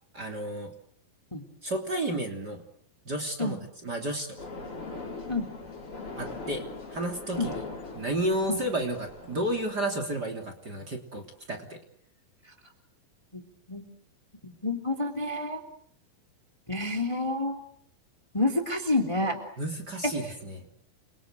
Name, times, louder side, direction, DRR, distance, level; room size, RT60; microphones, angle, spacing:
voice 1, 0.1-0.7 1.6-2.6 3.1-4.4 6.2-6.6 6.9-7.6 7.9-11.8 19.6-20.7, right 1 dB, 30° right, 5 dB, 3.5 m, -32 dB
sound 1, 4.4-9.6, left 3 dB, 35° left, 5.4 m, -40 dB
voice 2, 14.4-15.6 16.7-17.6 18.3-19.4, left 2 dB, 10° left, 6 dB, 3.0 m, -28 dB
30.0 x 23.5 x 8.0 m, 0.64 s
omnidirectional pair, 4.1 m